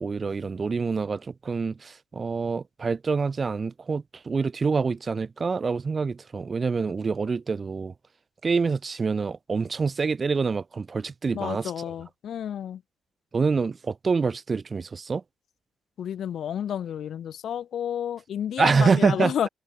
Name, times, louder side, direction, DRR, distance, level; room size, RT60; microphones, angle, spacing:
voice 1, 0.0-7.9 8.4-11.7 13.3-15.2 18.6-19.3, right 4 dB, 35° right, 0.8 m, -26 dB
voice 2, 11.3-12.8 16.0-19.5, left 9 dB, 65° left, 1.0 m, -30 dB
cardioid pair, 90°, 0 cm